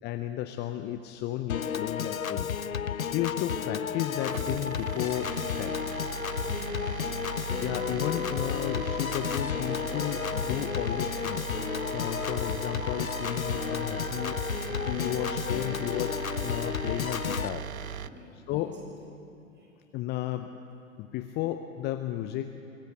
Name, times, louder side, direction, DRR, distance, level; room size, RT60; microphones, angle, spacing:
voice 1, 0.0-2.5 3.1-5.3 5.6-5.8 7.6-11.4 11.9-14.4 14.9-17.7 18.5-18.7 19.9-20.5 21.0-22.6, left 13 dB, 25° left, 8 dB, 0.7 m, -33 dB
Piano / Organ, 1.5-17.5, left 8 dB, 85° left, 0.7 m, -32 dB
sound 1, 4.1-18.1, right 8 dB, 90° right, 0.6 m, -38 dB
voice 2, 6.4-7.3 14.6-15.2 18.0-18.8 19.5-19.8, right 1 dB, 25° right, -2 dB, 7.4 m, -52 dB
24.0 x 16.0 x 8.2 m, 2.7 s
figure-of-eight pair, 105°, 41 cm